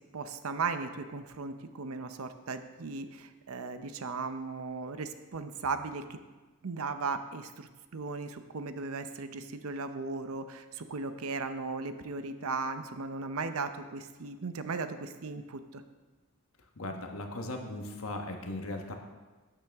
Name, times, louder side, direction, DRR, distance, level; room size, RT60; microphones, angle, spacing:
voice 1, 0.1-6.2 6.6-15.8, right 4 dB, 70° right, 9 dB, 0.7 m, -37 dB
voice 2, 16.8-18.9, left 2 dB, 65° left, 3 dB, 1.3 m, -38 dB
11.5 x 8.9 x 3.5 m, 1.3 s
head